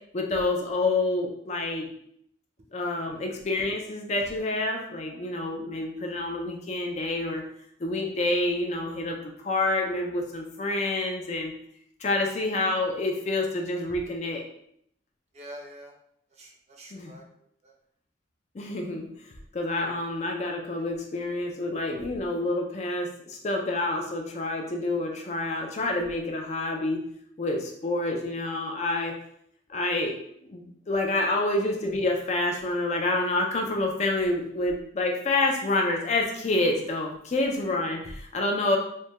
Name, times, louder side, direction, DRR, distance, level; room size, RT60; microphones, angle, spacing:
voice 1, 0.1-1.9 2.7-7.4 7.8-11.5 12.0-14.4 16.9-17.2 18.5-19.1 19.5-27.0 27.4-29.1 29.7-30.2 30.5-38.8, left 2 dB, 35° left, 2 dB, 0.4 m, -28 dB
voice 2, 15.3-15.9 16.3-17.2 17.6-17.8, equal, 35° right, 1 dB, 0.4 m, -46 dB
3.3 x 2.1 x 2.9 m, 0.70 s
head